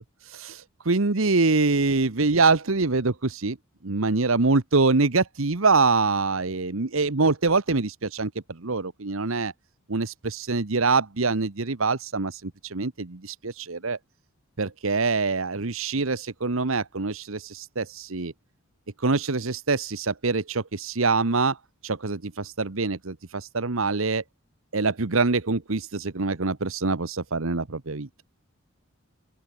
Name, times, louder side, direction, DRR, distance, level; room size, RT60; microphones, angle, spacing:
voice 1, 0.2-3.6 3.8-8.3 8.6-9.5 9.9-14.0 14.6-18.3 19.0-21.6 21.8-24.2 24.7-28.1, right 3 dB, 70° right, 1.2 m, -24 dB
open air
head